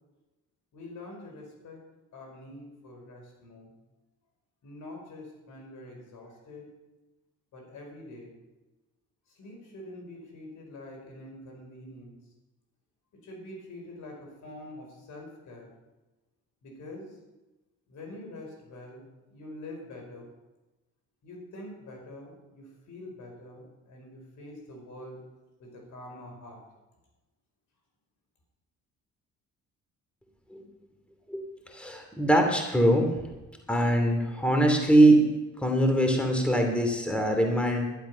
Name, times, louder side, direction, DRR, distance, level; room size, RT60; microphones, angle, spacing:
voice 1, 0.7-1.8 2.1-3.7 4.6-6.7 7.5-8.3 9.3-12.2 13.1-15.7 16.6-17.2 17.9-20.3 21.2-25.2 25.6-26.6, left 1 dB, 75° left, 1 dB, 5.1 m, -45 dB
voice 2, 31.3-33.1 33.7-35.2 35.6-37.9, right 1 dB, 5° left, 3 dB, 2.6 m, -22 dB
12.0 x 11.5 x 5.6 m, 1.1 s
cardioid pair, 90°, 30 cm